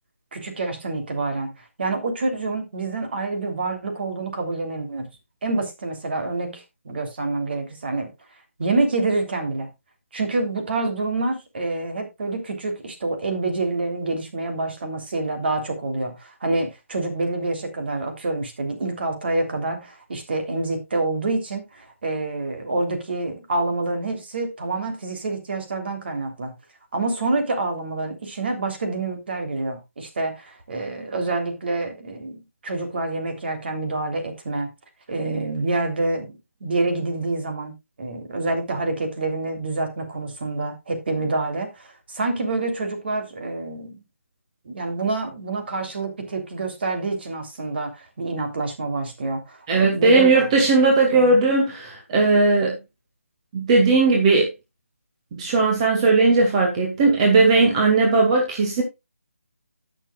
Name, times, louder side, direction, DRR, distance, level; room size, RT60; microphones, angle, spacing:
voice 1, 0.3-5.0 5.4-8.1 8.6-9.7 10.1-26.5 26.9-34.7 35.1-44.0 44.6-50.5 51.1-51.3, right 2 dB, 50° right, 3.4 m, -27 dB
voice 2, 49.7-52.8 53.5-54.5 55.3-58.8, right 3 dB, 25° right, 2.2 m, -18 dB
18.0 x 6.8 x 2.4 m
figure-of-eight pair, 150°, 7 cm